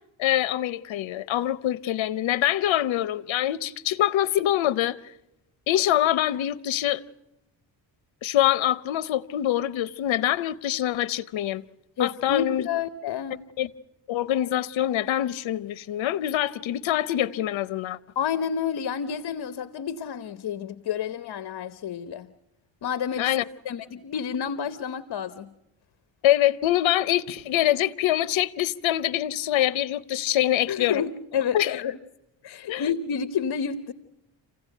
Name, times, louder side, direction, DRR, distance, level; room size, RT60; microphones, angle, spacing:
voice 1, 0.2-5.0 5.7-7.0 8.2-11.6 12.0-12.6 13.3-13.7 14.1-18.0 23.2-23.4 26.2-31.0 31.5-31.8 32.7-32.8, left 13 dB, 85° left, 0.8 m, -24 dB
voice 2, 12.0-13.4 18.2-22.3 22.8-23.3 23.6-25.5 30.7-32.0 32.4-33.9, left 7 dB, 60° left, 1.0 m, -29 dB
27.0 x 16.0 x 9.1 m
cardioid pair, 100°, 45 cm